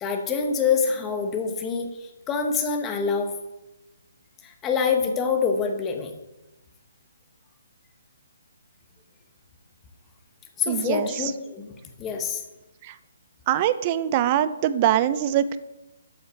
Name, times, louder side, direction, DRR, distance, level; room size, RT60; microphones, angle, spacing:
voice 1, 0.0-3.3 4.4-6.1 10.6-11.7 12.0-12.4, left 5 dB, 10° left, 4 dB, 0.7 m, -26 dB
voice 2, 10.7-11.3 12.8-13.0 13.5-15.6, right 11 dB, 20° right, 14 dB, 0.4 m, -23 dB
12.5 x 5.6 x 4.6 m, 1.0 s
hypercardioid pair, 175°, 0 cm